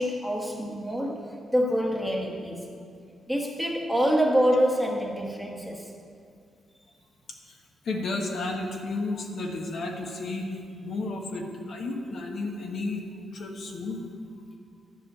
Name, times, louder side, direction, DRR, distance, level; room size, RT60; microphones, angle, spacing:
voice 1, 0.0-2.8 3.3-5.9, equal, ahead, 0 dB, 1.2 m, -26 dB
voice 2, 7.4-13.1 13.3-14.1, left 2 dB, 55° left, 1 dB, 1.3 m, -33 dB
12.0 x 5.5 x 8.5 m, 2.3 s
cardioid pair, 125°, 0 cm